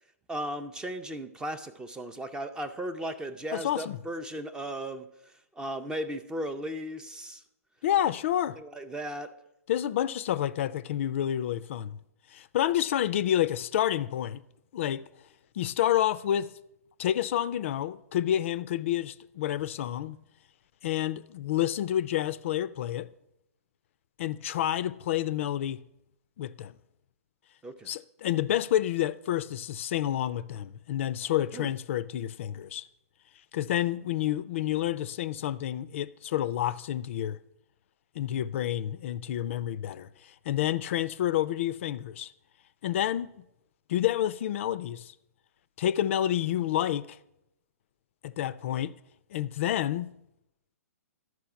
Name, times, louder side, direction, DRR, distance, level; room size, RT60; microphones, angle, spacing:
voice 1, 0.3-5.1 5.6-7.4 8.6-9.3 27.6-27.9 31.5-31.7, right 1 dB, 10° right, 0.4 m, -36 dB
voice 2, 3.5-4.0 7.8-8.6 9.7-12.0 12.3-14.4 14.7-15.0 15.6-16.5 17.0-20.2 20.8-23.1 24.2-25.8 26.4-26.7 27.9-32.9 33.5-37.4 38.2-42.3 42.8-43.3 43.9-45.1 45.8-47.2 48.2-49.0 49.3-50.1, left 12 dB, 50° left, 0.4 m, -29 dB
12.0 x 4.8 x 5.8 m
hypercardioid pair, 130°, 9 cm